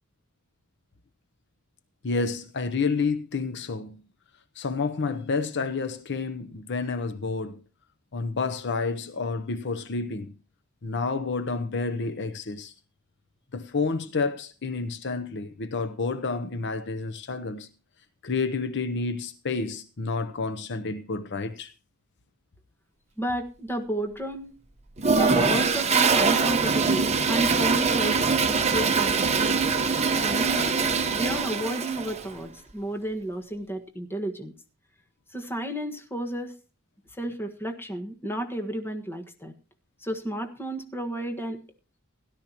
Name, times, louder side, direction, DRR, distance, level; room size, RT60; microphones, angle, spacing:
voice 1, 2.0-4.0 4.6-7.6 8.1-10.3 10.8-12.7 13.5-17.7 18.2-21.7, left 4 dB, 55° left, 0.8 m, -29 dB
voice 2, 23.2-24.6 25.1-29.8 30.2-30.7 31.1-34.5 35.3-36.5 37.2-39.5 40.0-41.6, right 1 dB, 10° left, 1.5 m, -32 dB
Toilet flush, 25.0-32.2, right 4 dB, 30° right, 1.1 m, -23 dB
17.0 x 12.0 x 3.0 m
head